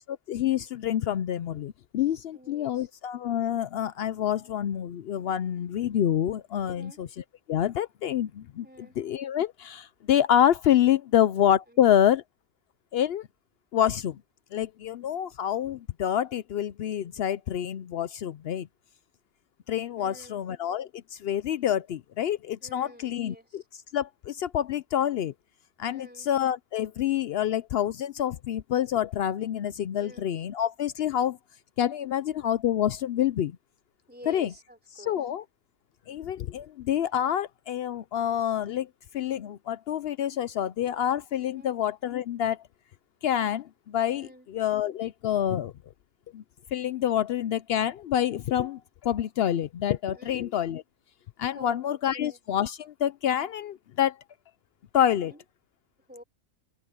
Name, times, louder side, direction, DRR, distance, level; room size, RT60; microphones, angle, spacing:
voice 1, 0.3-7.1 7.5-8.7 9.0-12.2 12.9-13.3 13.7-14.2 14.5-18.7 19.7-23.6 23.9-25.3 25.8-31.4 31.8-33.6 34.3-34.5 35.1-35.4 36.1-38.9 39.1-42.6 43.2-45.7 46.3-46.4 46.7-50.8 51.4-54.2 54.9-55.3, left 10 dB, 85° left, 0.5 m, -27 dB
voice 2, 2.3-2.9 6.6-7.0 8.6-9.0 11.7-12.1 20.0-20.4 22.6-23.7 25.9-26.3 29.9-30.3 34.1-35.3 41.4-41.7 44.1-44.5 50.1-50.5 51.5-52.4 55.2-55.4 56.1-56.2, equal, 5° right, 3.3 m, -50 dB
omnidirectional pair, 1.7 m